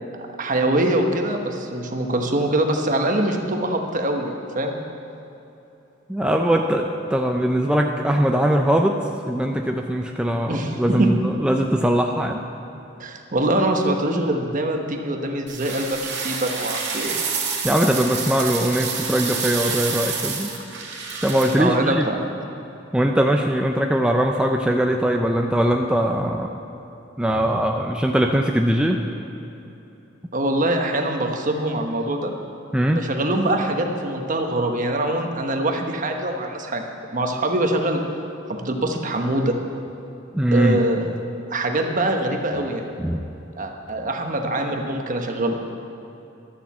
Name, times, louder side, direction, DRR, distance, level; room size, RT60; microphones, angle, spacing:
voice 1, 0.4-4.8 10.5-11.1 13.0-17.1 21.6-22.2 30.3-32.3 32.9-36.8 37.1-38.0 38.5-39.6 40.5-41.1 41.5-42.8 43.6-45.6, right 1 dB, 45° right, 3 dB, 1.1 m, -23 dB
voice 2, 6.1-12.4 17.6-20.5 21.2-22.0 22.9-26.5 27.2-29.0 32.7-33.1 40.3-40.8 43.0-43.2, equal, 5° right, 2 dB, 0.4 m, -21 dB
sound 1, 15.5-21.6, right 5 dB, 65° right, 2.0 m, -28 dB
12.5 x 7.2 x 7.3 m, 2.9 s
head